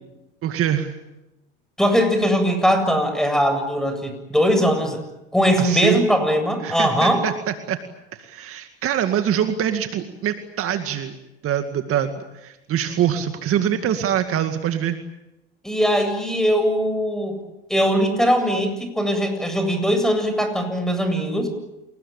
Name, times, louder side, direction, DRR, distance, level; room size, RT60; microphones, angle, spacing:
voice 1, 0.4-0.9 5.6-6.0 6.6-7.8 8.1-11.1 11.4-15.0, right 10 dB, 45° right, 7 dB, 2.2 m, -24 dB
voice 2, 1.8-5.0 5.3-7.3 15.6-17.4 17.7-21.5, equal, ahead, 7 dB, 7.9 m, -20 dB
29.0 x 20.0 x 8.8 m, 0.96 s
hypercardioid pair, 90°, 30 cm